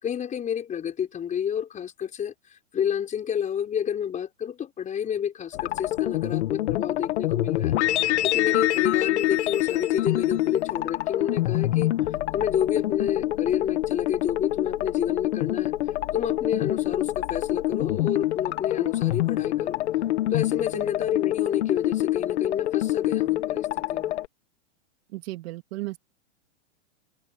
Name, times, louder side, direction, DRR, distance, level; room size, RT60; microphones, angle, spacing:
voice 1, 0.0-7.8 8.2-11.9 12.3-15.7 16.1-19.8 20.3-24.2, left 8 dB, 20° left, 5.9 m, -29 dB
sound 1, 5.5-24.3, left 15 dB, 60° left, 2.0 m, -26 dB
voice 2, 25.1-26.0, right 19 dB, 55° right, 2.5 m, -34 dB
hypercardioid pair, 140°, 38 cm